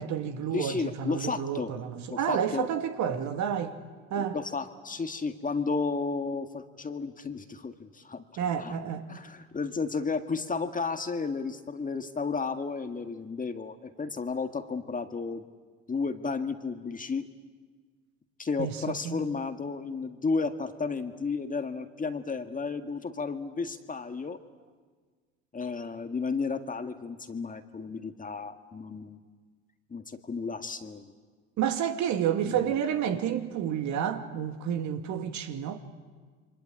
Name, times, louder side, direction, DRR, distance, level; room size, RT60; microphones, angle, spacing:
voice 1, 0.0-3.7 4.1-4.4 8.4-9.1 18.6-19.2 31.6-35.8, right 9 dB, 55° right, 2.4 m, -30 dB
voice 2, 0.5-1.7 2.1-2.7 4.2-8.2 8.6-8.8 9.1-15.4 15.9-17.3 18.4-24.4 25.5-29.2 29.9-31.1 32.5-32.7, left 4 dB, 20° left, 1.9 m, -33 dB
28.5 x 24.0 x 8.6 m
hypercardioid pair, 70°, 35 cm